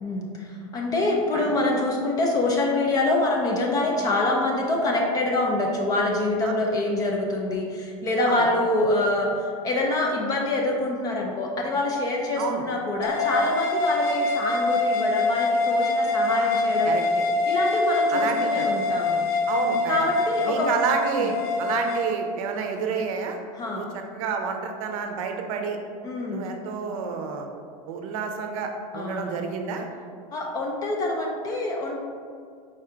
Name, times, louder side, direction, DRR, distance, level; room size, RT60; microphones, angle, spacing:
voice 1, 0.0-16.9 17.4-19.2 19.9-20.7 21.1-21.3 23.5-23.9 26.0-26.5 28.9-29.4 30.3-31.9, left 2 dB, 20° left, 0 dB, 0.3 m, -25 dB
sound 1, 13.0-22.1, left 2 dB, 75° left, 0.7 m, -24 dB
voice 2, 16.3-17.0 18.1-18.7 19.5-20.1 20.5-23.4 23.7-25.8 26.3-27.5 27.9-29.9, right 5 dB, 60° right, 4 dB, 0.6 m, -29 dB
4.4 x 2.4 x 4.4 m, 2.2 s
supercardioid pair, 155°, 20 cm